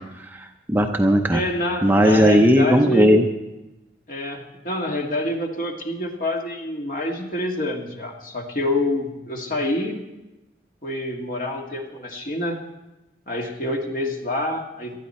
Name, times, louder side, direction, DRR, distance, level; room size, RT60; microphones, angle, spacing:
voice 1, 0.3-1.4 1.8-3.2, equal, 10° right, 3 dB, 0.7 m, -17 dB
voice 2, 1.3-3.1 4.1-10.0 10.8-12.6 13.3-15.0, left 1 dB, 45° left, 1 dB, 1.9 m, -27 dB
19.0 x 12.5 x 4.3 m, 1.0 s
head